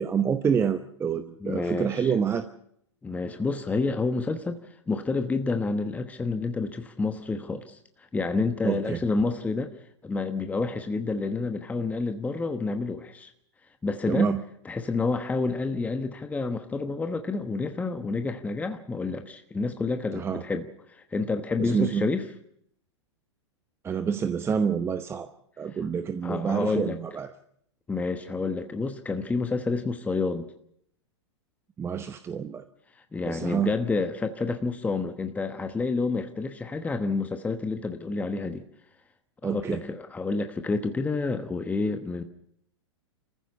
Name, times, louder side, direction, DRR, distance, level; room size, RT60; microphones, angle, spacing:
voice 1, 0.0-2.5 8.6-9.0 14.1-14.4 20.1-20.4 21.6-22.1 23.8-25.3 25.6-27.3 31.8-32.6 33.2-33.7 39.4-39.8, right 7 dB, 15° right, 0.9 m, -27 dB
voice 2, 1.4-2.1 3.0-4.6 4.9-7.8 8.1-9.8 10.0-13.3 13.8-14.3 14.6-22.3 25.7-25.8 26.2-27.0 27.9-30.5 33.1-38.6 39.4-42.2, left 3 dB, 10° left, 1.1 m, -29 dB
27.0 x 15.0 x 6.9 m
figure-of-eight pair, 105°, 15 cm